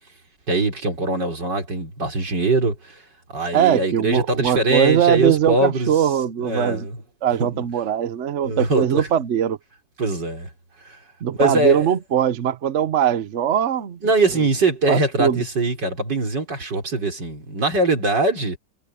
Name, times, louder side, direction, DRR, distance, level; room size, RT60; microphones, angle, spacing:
voice 1, 0.5-3.0 3.3-5.9 6.4-7.0 7.4-7.6 8.4-9.1 10.0-10.5 10.8-11.0 11.3-11.9 14.0-18.6, right 2 dB, 90° right, 5.2 m, -22 dB
voice 2, 3.5-6.9 7.2-9.6 11.2-14.0 14.9-15.4, right 9 dB, 50° right, 1.0 m, -21 dB
omnidirectional pair, 1.8 m